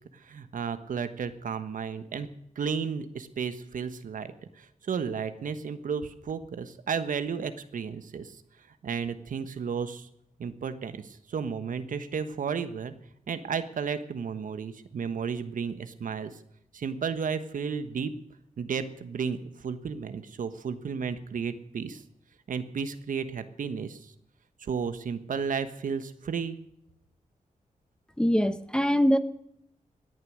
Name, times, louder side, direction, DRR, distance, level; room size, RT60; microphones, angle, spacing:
voice 1, 0.1-2.3 2.5-8.4 8.8-10.1 10.4-12.9 13.3-16.4 16.7-18.1 18.6-22.0 22.5-24.1 24.6-26.6, right 6 dB, 75° right, 1.3 m, -33 dB
voice 2, 28.2-29.2, equal, 5° left, 0.9 m, -23 dB
17.5 x 11.0 x 6.3 m
cardioid pair, 85°, 14 cm